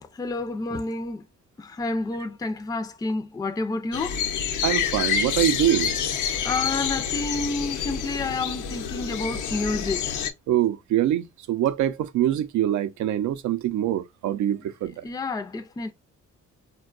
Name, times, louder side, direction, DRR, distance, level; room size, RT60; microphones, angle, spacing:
voice 1, 0.1-1.2 1.6-4.2 6.4-10.2 15.0-15.9, left 3 dB, 15° left, 0.4 m, -29 dB
sound 1, 3.9-10.3, left 7 dB, 75° left, 0.7 m, -28 dB
voice 2, 4.6-5.9 10.5-14.9, right 12 dB, 70° right, 0.5 m, -24 dB
4.3 x 2.2 x 2.3 m
cardioid pair, 90°, 30 cm